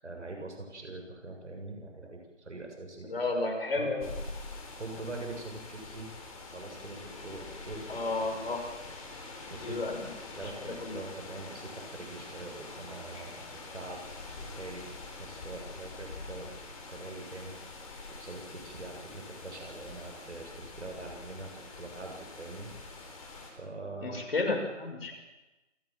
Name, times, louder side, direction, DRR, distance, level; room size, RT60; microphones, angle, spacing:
voice 1, 0.0-3.2 3.8-4.2 4.8-6.1 6.5-8.3 9.5-9.8 10.3-13.4 13.7-14.0 14.4-14.9 15.2-16.5 16.9-17.5 18.2-22.7 23.6-24.2, right 2 dB, 65° right, 2 dB, 7.2 m, -43 dB
voice 2, 3.1-4.1 7.9-8.6 9.6-10.0 10.3-11.0 24.0-25.1, left 3 dB, 50° left, 3 dB, 6.1 m, -32 dB
sound 1, 4.0-23.5, left 3 dB, 30° left, 4.3 m, -45 dB
28.0 x 15.0 x 7.6 m, 1.1 s
figure-of-eight pair, 170°, 38 cm